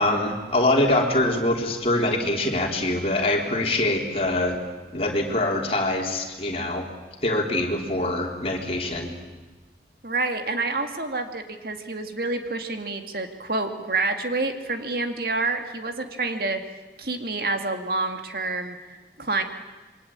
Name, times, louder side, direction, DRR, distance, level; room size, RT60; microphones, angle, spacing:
voice 1, 0.0-4.6 4.9-6.8 7.2-9.1, left 1 dB, 35° left, 1 dB, 3.9 m, -24 dB
voice 2, 10.0-16.6 17.0-19.4, right 3 dB, 55° right, 6 dB, 2.1 m, -28 dB
27.5 x 23.5 x 8.8 m, 1.2 s
head